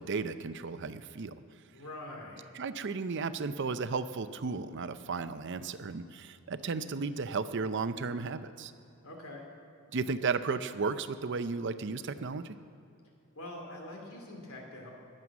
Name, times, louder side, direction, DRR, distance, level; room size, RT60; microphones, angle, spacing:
voice 1, 0.0-1.3 2.5-8.7 9.9-12.5, right 4 dB, 55° right, 12 dB, 0.6 m, -34 dB
voice 2, 1.7-2.5 9.0-9.4 13.3-14.9, left 1 dB, 85° left, 1 dB, 2.8 m, -44 dB
21.0 x 7.7 x 6.0 m, 2.7 s
head